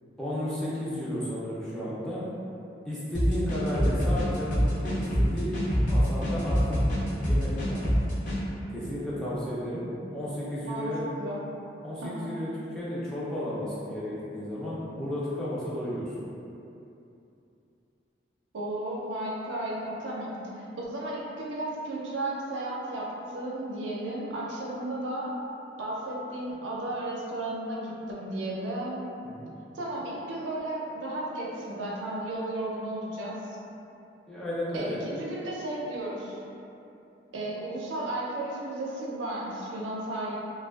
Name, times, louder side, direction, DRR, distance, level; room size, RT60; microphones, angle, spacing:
voice 1, 0.2-2.2 2.9-5.6 5.8-6.8 7.2-8.0 8.7-9.8 10.1-11.0 11.8-12.5 12.7-16.1 29.2-29.5 34.3-35.0, equal, 5° left, -10 dB, 0.3 m, -33 dB
sound 1, 3.1-8.4, equal, 45° left, 0.6 m, -25 dB
voice 2, 18.5-25.3 25.8-29.1 29.7-33.6 34.7-36.4 37.3-40.4, right 1 dB, 90° right, -4 dB, 0.5 m, -34 dB
2.4 x 2.2 x 2.3 m, 2.8 s
head